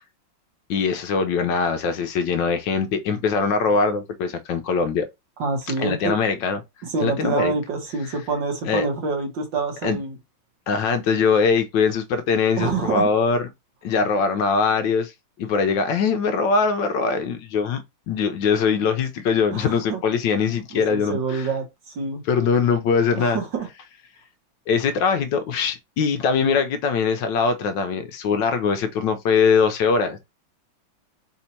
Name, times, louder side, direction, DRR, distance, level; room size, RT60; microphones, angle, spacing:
voice 1, 0.7-5.1 5.8-6.6 7.0-7.5 8.1-8.2 8.7-8.9 9.8-10.0 10.7-13.5 13.8-15.1 15.4-21.5 22.3-23.4 24.7-30.2, left 5 dB, 75° left, 1.2 m, -22 dB
voice 2, 5.4-6.1 6.8-10.2 12.6-13.1 19.5-20.0 20.7-21.7 22.0-22.2 23.1-23.7, right 4 dB, 65° right, 1.9 m, -26 dB
4.2 x 2.8 x 4.3 m
omnidirectional pair, 2.2 m